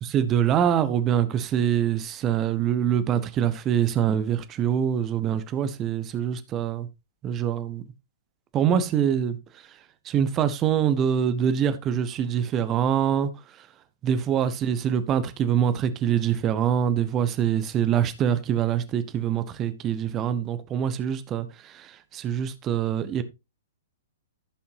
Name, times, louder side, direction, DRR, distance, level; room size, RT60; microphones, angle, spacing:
voice 1, 0.0-6.9 7.2-7.8 8.5-9.8 10.0-13.7 14.0-23.2, right 9 dB, 25° right, 1.0 m, -25 dB
15.0 x 5.8 x 2.8 m
figure-of-eight pair, 110°, 0 cm